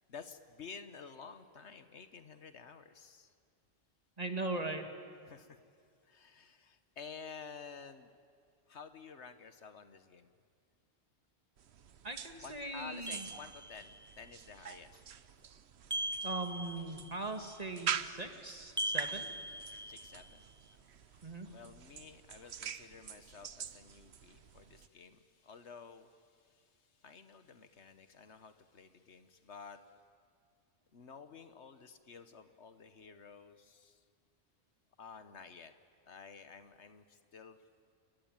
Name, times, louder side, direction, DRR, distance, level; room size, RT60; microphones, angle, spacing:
voice 1, 0.1-3.3 5.2-5.6 6.0-8.1 8.7-10.3 12.4-15.0 15.4-15.5 19.5-29.9 30.9-34.0 35.0-35.7 36.1-37.6, left 5 dB, 75° left, 10 dB, 1.5 m, -52 dB
voice 2, 4.2-4.9 12.0-13.3 16.2-19.3 21.2-21.5, right 2 dB, 35° right, 6 dB, 2.1 m, -40 dB
sound 1, 11.6-24.9, right 8 dB, 70° right, 1.1 m, -45 dB
sound 2, 13.1-14.1 15.9-17.2 18.8-20.3, right 1 dB, 5° right, 0.3 m, -40 dB
29.5 x 21.5 x 9.0 m, 2.2 s
omnidirectional pair, 1.2 m